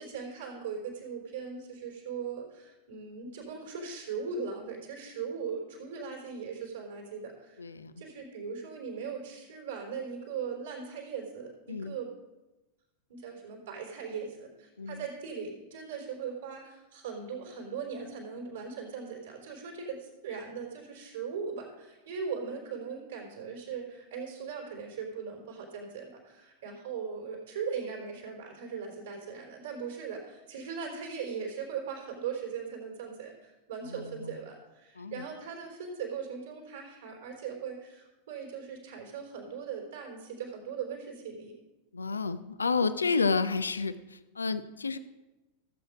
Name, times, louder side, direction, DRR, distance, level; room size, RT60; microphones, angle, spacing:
voice 1, 0.0-7.6 8.0-12.1 13.1-41.6, right 6 dB, 65° right, 0 dB, 3.8 m, -39 dB
voice 2, 7.6-7.9 11.7-12.0 14.8-15.0 33.9-34.4 35.0-35.2 41.9-45.0, left 4 dB, 75° left, 13 dB, 0.5 m, -31 dB
16.0 x 7.9 x 5.1 m, 1.1 s
figure-of-eight pair, 90°, 0 cm